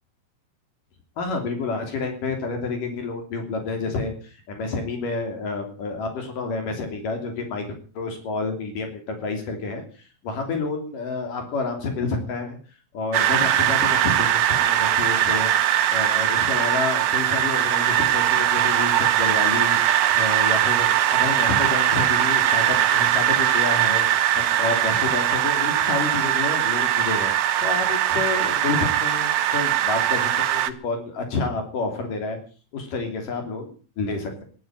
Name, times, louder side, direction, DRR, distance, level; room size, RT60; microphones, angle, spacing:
voice 1, 1.2-7.6 8.0-9.8 10.2-12.6 12.9-15.5 15.9-19.8 20.1-24.1 24.3-27.3 27.6-32.4 32.7-34.4, left 3 dB, 65° left, 4 dB, 4.6 m, -29 dB
sound 1, 13.1-30.7, right 11 dB, 90° right, 3.0 m, -21 dB
12.5 x 11.5 x 8.8 m, 0.40 s
omnidirectional pair, 4.2 m